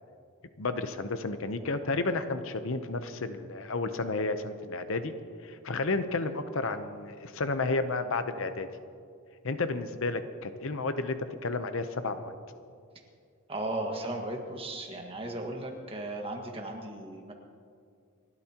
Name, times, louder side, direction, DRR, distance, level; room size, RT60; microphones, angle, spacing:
voice 1, 0.6-5.1 5.4-8.7 9.4-12.3, left 3 dB, 60° left, 9 dB, 0.8 m, -32 dB
voice 2, 13.5-17.3, right 1 dB, 25° right, 1 dB, 1.7 m, -36 dB
29.5 x 12.5 x 3.0 m, 2.3 s
head